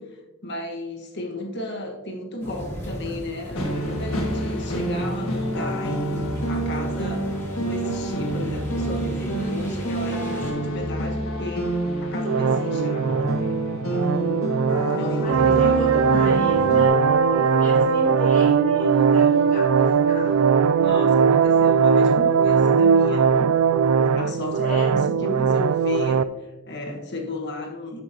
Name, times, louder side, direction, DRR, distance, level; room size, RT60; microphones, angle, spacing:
voice 1, 0.0-7.2 7.6-13.6 13.9-14.3 14.9-15.9 16.1-16.4 20.8-23.5 24.1-28.0, left 1 dB, 55° left, 2 dB, 1.4 m, -34 dB
sound 1, 2.4-10.5, equal, 15° left, 2.3 m, -38 dB
sound 2, 3.5-16.9, right 1 dB, 85° left, 1.6 m, -27 dB
voice 2, 9.4-10.0 14.9-17.0 17.3-20.5 24.6-25.2, left 1 dB, 40° left, 0 dB, 0.7 m, -35 dB
sound 3, 12.2-26.2, right 6 dB, 75° right, 0.3 m, -19 dB
13.5 x 6.2 x 2.8 m, 1.2 s
head